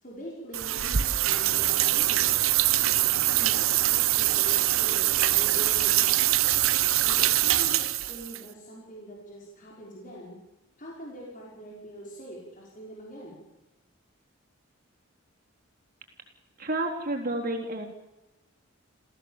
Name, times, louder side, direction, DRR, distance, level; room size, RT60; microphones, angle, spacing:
voice 1, 0.0-2.3 3.4-6.3 7.0-10.4 10.8-13.4, right 1 dB, 40° left, -3 dB, 5.5 m, -43 dB
sound 1, 0.5-8.4, right 14 dB, 80° right, 0.9 m, -23 dB
voice 2, 16.6-17.9, right 2 dB, 45° right, 2 dB, 3.9 m, -30 dB
28.0 x 15.5 x 7.4 m, 0.98 s
head